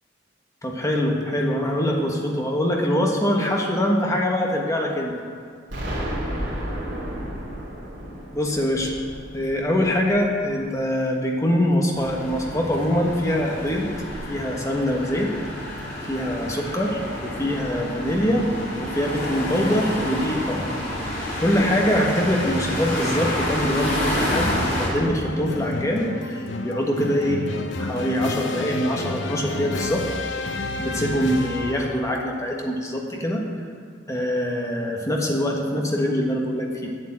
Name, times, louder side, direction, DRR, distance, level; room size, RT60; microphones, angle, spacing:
voice 1, 0.6-5.1 8.3-8.9 9.3-13.9 14.3-15.3 15.7-18.5 18.8-20.7 21.4-27.4 27.8-30.1 30.8-33.4 34.1-36.9, equal, 15° left, 0 dB, 1.3 m, -24 dB
Explosion, 5.7-10.5, equal, 70° right, 3.2 m, -32 dB
sound 1, 11.9-24.9, left 1 dB, 50° left, 3.1 m, -29 dB
sound 2, 24.2-32.1, left 2 dB, 70° left, 0.8 m, -31 dB
8.5 x 7.8 x 8.7 m, 2.2 s
head